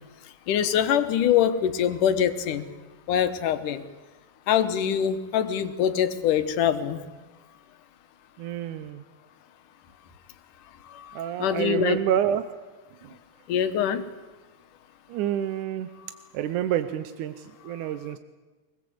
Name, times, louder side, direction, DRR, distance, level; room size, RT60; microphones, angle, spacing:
voice 1, 0.5-2.6 3.1-3.8 4.5-7.0 10.9-12.0 13.5-14.0, left 9 dB, 85° left, 11 dB, 2.7 m, -24 dB
voice 2, 8.4-9.0 11.1-12.5 13.0-13.1 15.1-15.9 16.3-18.2, right 10 dB, 80° right, 9 dB, 2.3 m, -28 dB
24.5 x 20.0 x 7.9 m, 1.3 s
omnidirectional pair, 3.6 m